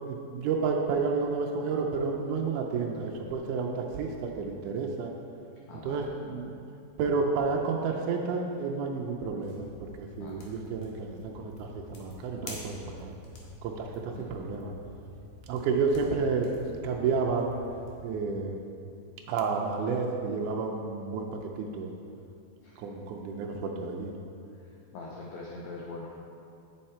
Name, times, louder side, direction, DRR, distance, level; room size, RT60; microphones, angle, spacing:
voice 1, 0.0-5.1 5.8-6.5 7.0-9.7 10.0-13.1 13.6-14.7 15.5-16.5 16.8-17.5 18.0-18.6 19.3-21.3 21.6-21.9 22.8-24.1, right 4 dB, 90° right, 1 dB, 1.7 m, -30 dB
voice 2, 5.7-6.0 10.2-10.5 14.1-14.3 22.6-22.8 24.6-26.1, left 3 dB, 85° left, -3 dB, 1.6 m, -43 dB
sound 1, 9.4-18.2, equal, 60° left, 1.9 m, -48 dB
8.5 x 6.6 x 4.2 m, 2.5 s
omnidirectional pair, 4.3 m